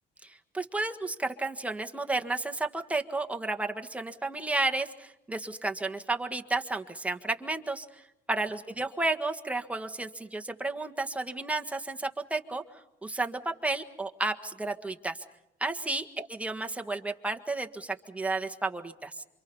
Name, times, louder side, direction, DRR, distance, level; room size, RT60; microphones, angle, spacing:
voice 1, 0.2-12.6 13.0-15.2 15.6-19.2, right 2 dB, 10° right, 4 dB, 1.6 m, -32 dB
27.5 x 26.0 x 5.5 m, 0.87 s
cardioid pair, 110°, 17 cm